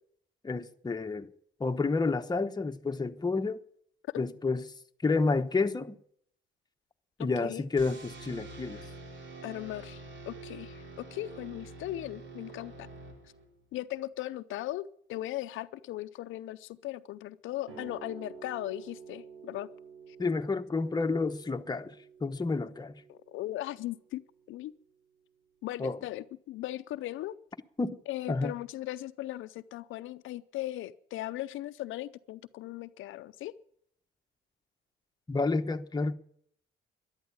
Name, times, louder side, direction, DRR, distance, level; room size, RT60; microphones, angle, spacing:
voice 1, 0.4-1.3 1.6-3.6 4.2-4.6 5.0-6.0 7.2-8.8 20.2-21.9 22.2-23.0 25.8-26.0 27.8-28.0 28.3-28.5 35.3-36.1, left 3 dB, 20° left, 1.0 m, -30 dB
voice 2, 7.2-7.6 9.4-12.9 13.7-19.7 20.1-20.2 23.1-24.2 24.5-24.7 25.6-27.3 28.1-33.5, left 15 dB, 85° left, 0.6 m, -38 dB
sound 1, 7.8-13.6, right 3 dB, 70° right, 3.2 m, -46 dB
sound 2, 17.7-24.8, right 6 dB, 90° right, 5.9 m, -51 dB
12.5 x 11.0 x 8.6 m
cardioid pair, 90°, 20 cm